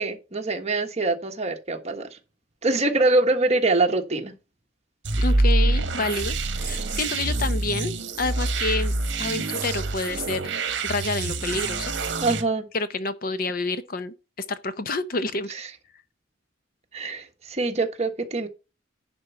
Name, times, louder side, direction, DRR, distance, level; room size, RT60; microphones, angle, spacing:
voice 1, 0.0-2.1 2.6-4.3 12.2-12.7 16.9-18.5, right 2 dB, 35° right, 1.3 m, -24 dB
sound 1, 5.0-12.4, right 2 dB, 60° right, 1.2 m, -26 dB
voice 2, 5.2-7.9 8.2-8.9 9.2-10.5 10.8-11.9 12.7-14.1 14.5-15.5, left 3 dB, 45° left, 0.7 m, -28 dB
10.5 x 4.4 x 5.6 m
head